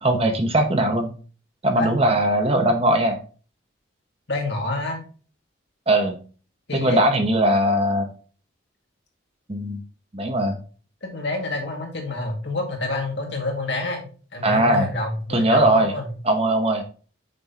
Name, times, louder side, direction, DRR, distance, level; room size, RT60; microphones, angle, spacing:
voice 1, 0.0-1.1 1.6-3.2 5.9-6.2 6.7-8.1 9.5-9.8 10.1-10.6 14.4-14.9 15.3-15.9 16.2-16.8, right 1 dB, 30° right, 5 dB, 1.0 m, -20 dB
voice 2, 4.3-5.0 6.7-7.0 11.0-16.1, left 2 dB, 60° left, 1 dB, 2.2 m, -28 dB
7.6 x 6.2 x 3.0 m, 0.38 s
head